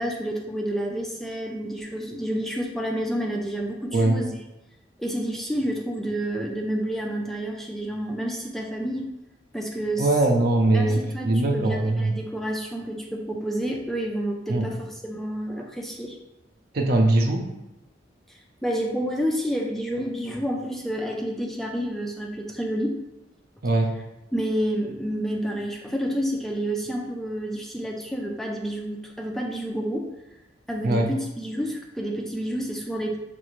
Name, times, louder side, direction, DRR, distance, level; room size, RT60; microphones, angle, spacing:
voice 1, 0.0-4.4 5.0-9.1 9.5-10.1 10.7-16.2 18.3-23.0 24.3-30.1 30.7-33.2, equal, ahead, 0 dB, 0.3 m, -29 dB
voice 2, 10.0-12.1 14.5-14.7 16.7-17.5 23.6-23.9 30.8-31.1, right 2 dB, 55° right, 3 dB, 0.6 m, -21 dB
6.0 x 2.4 x 3.0 m, 0.93 s
head